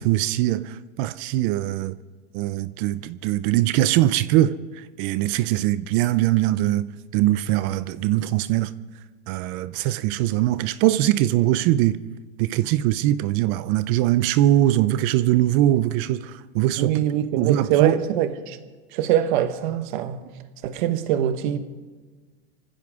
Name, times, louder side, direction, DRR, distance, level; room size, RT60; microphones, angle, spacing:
voice 1, 0.0-2.0 2.3-4.6 5.0-8.7 9.3-12.0 12.4-16.9 17.4-18.0, right 14 dB, 30° right, 0.4 m, -21 dB
voice 2, 16.8-18.6 18.9-20.2 20.6-21.6, right 10 dB, 50° right, 1.3 m, -23 dB
25.5 x 15.5 x 3.6 m
supercardioid pair, 150°, 32 cm